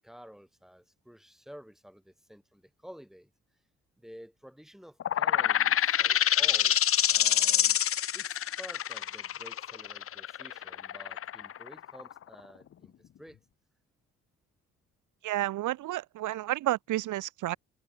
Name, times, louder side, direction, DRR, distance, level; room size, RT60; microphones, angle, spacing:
voice 1, 0.0-3.3 4.0-6.8 7.1-7.8 8.1-13.4, equal, ahead, 6.1 m, -51 dB
sound 1, 5.0-12.3, left 10 dB, 45° left, 0.7 m, -26 dB
voice 2, 15.2-17.6, right 15 dB, 80° right, 1.1 m, -31 dB
cardioid pair, 90°, 30 cm